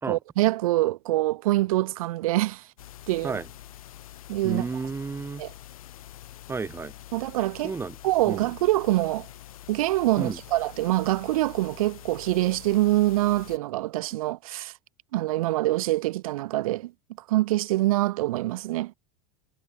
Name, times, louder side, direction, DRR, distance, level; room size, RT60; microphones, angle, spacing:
voice 1, 0.1-2.7 3.1-3.4 4.3-4.7 5.4-5.5 7.1-7.7 8.0-9.3 9.7-14.7 15.1-16.9 17.3-18.9, right 17 dB, 80° right, 0.4 m, -25 dB
sound 1, 2.8-13.6, left 13 dB, 90° left, 0.8 m, -46 dB
voice 2, 4.4-5.4 6.5-6.9 7.6-8.0 8.3-8.5 10.2-10.4, right 4 dB, 15° right, 0.8 m, -32 dB
hypercardioid pair, 105°, 18 cm